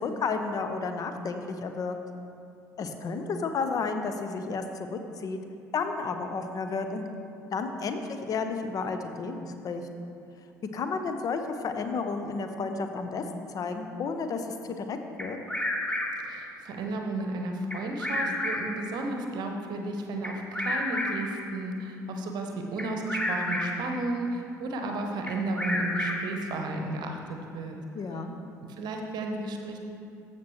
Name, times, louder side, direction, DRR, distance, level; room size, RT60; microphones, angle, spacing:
voice 1, 0.0-2.0 2.8-4.6 4.9-5.4 5.7-7.1 7.5-9.8 10.7-15.4 27.9-28.4, left 4 dB, 40° left, 7 dB, 0.7 m, -32 dB
Bird vocalization bird call bird song, 15.2-16.4 17.7-18.8 20.2-21.4 22.8-23.9 25.3-26.4, left 1 dB, 10° left, 1.0 m, -31 dB
voice 2, 16.2-27.8 28.6-29.8, right 2 dB, 50° right, 3 dB, 0.9 m, -33 dB
14.5 x 6.0 x 3.1 m, 2.5 s
figure-of-eight pair, 55°, 9 cm